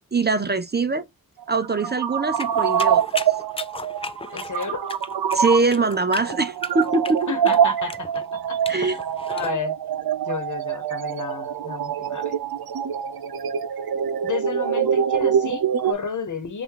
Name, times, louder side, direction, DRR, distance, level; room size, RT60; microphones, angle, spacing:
voice 1, 0.1-1.1 1.5-3.0 5.3-7.3 8.7-9.0, right 3 dB, 30° right, 0.6 m, -22 dB
sound 1, 1.4-15.9, right 8 dB, 80° right, 0.7 m, -25 dB
sound 2, 2.4-9.5, left 4 dB, 15° left, 0.3 m, -36 dB
voice 2, 4.3-4.9 7.3-9.0 9.3-9.7 10.3-12.4 14.2-16.6, left 6 dB, 55° left, 1.1 m, -32 dB
5.8 x 2.6 x 2.9 m
wide cardioid pair, 105°, 36 cm